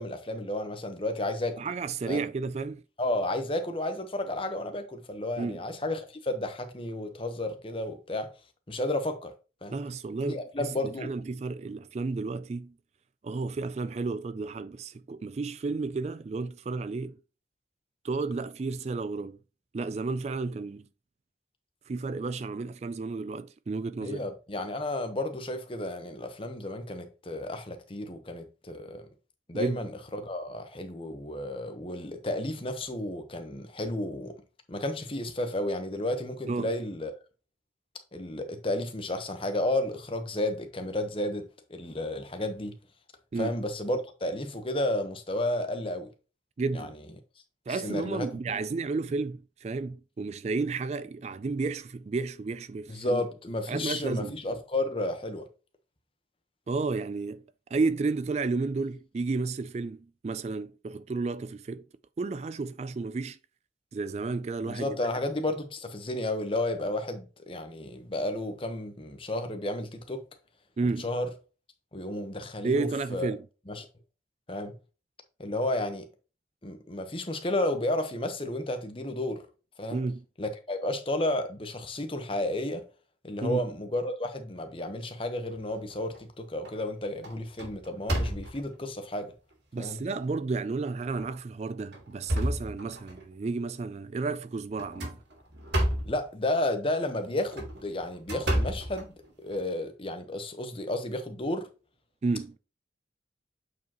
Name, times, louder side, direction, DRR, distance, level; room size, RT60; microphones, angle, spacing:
voice 1, 0.0-1.6 2.1-2.2 3.0-8.3 8.7-9.3 9.6-9.8 10.3-11.1 24.0-29.1 29.5-34.4 34.7-37.1 38.1-42.8 43.4-46.1 46.7-46.9 47.7-48.3 52.9-55.5 64.6-70.2 71.0-71.3 71.9-73.3 73.7-73.9 74.5-74.7 75.4-76.1 76.6-79.4 79.8-80.0 80.4-82.8 83.2-89.3 89.8-90.0 96.0-99.1 99.4-101.7, left 1 dB, 30° left, 1.0 m, -32 dB
voice 2, 1.6-2.8 5.4-5.6 9.7-12.7 13.2-17.2 18.0-19.4 19.7-20.8 21.9-24.2 29.5-29.8 36.5-36.7 43.3-43.5 46.6-46.9 47.7-53.2 53.7-54.4 56.7-57.4 57.7-61.9 62.2-63.4 63.9-65.0 70.8-71.1 72.6-73.4 79.9-80.2 83.4-83.6 89.7-95.2 102.2-102.6, right 3 dB, 35° right, 0.3 m, -32 dB
sound 1, 85.6-86.2 86.6-86.9 87.2-88.8 89.5-89.6 90.1-90.2 91.1-91.3 91.8-93.2 94.8-96.2 97.3-99.6, equal, 75° right, 2.4 m, -31 dB
8.2 x 4.8 x 3.0 m
head